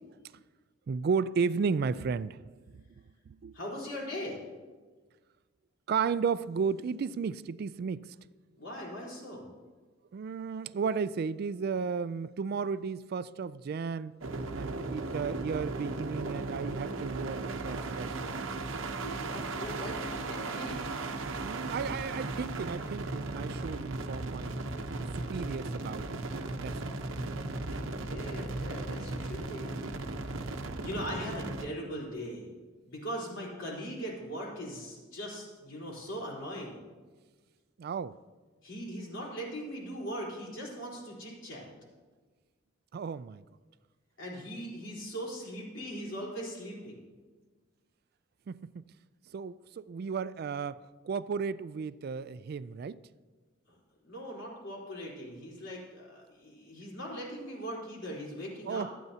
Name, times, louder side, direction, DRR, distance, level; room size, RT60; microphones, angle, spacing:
voice 1, 0.9-2.8 3.3-3.5 5.9-8.2 10.1-14.2 14.5-18.4 21.4-24.6 25.1-26.3 26.6-26.9 37.8-38.2 42.9-43.4 48.5-48.9 49.3-53.0 58.7-58.9, right 5 dB, 50° right, 0.3 m, -34 dB
voice 2, 3.5-4.5 8.6-9.5 19.0-20.9 27.8-30.5 30.8-32.5 32.9-36.8 38.6-41.7 44.2-47.0 54.0-58.9, equal, 70° left, 4.0 m, -40 dB
sound 1, 14.2-31.7, right 2 dB, 85° right, 0.9 m, -36 dB
24.5 x 9.2 x 2.8 m
head